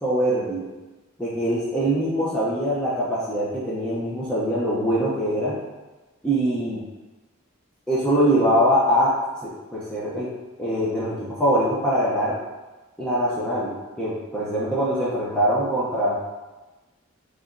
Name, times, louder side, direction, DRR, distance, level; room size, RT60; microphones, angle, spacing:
voice 1, 0.0-0.7 1.2-5.6 6.2-6.8 7.9-9.2 9.4-10.3 10.6-12.4 13.0-16.2, equal, 5° left, -8 dB, 0.6 m, -23 dB
4.6 x 3.0 x 2.6 m, 1.2 s
head